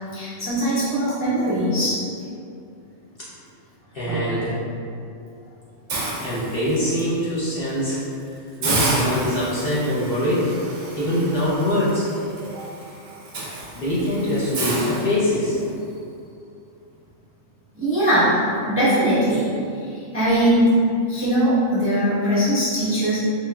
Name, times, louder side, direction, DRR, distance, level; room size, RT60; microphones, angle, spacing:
voice 1, 0.1-2.0 4.0-4.4 12.4-12.6 17.7-18.4 18.7-19.5 19.9-20.8 21.1-23.2, equal, 15° right, -12 dB, 0.5 m, -21 dB
voice 2, 3.9-4.6 6.2-8.0 8.6-10.5 10.9-12.1 13.7-15.6, left 1 dB, 55° left, -9 dB, 0.8 m, -23 dB
Hiss, 5.9-7.0 7.5-7.7 8.0-8.1 8.6-15.7, right 2 dB, 75° right, 1.0 m, -30 dB
3.7 x 2.7 x 2.2 m, 2.5 s
omnidirectional pair, 1.3 m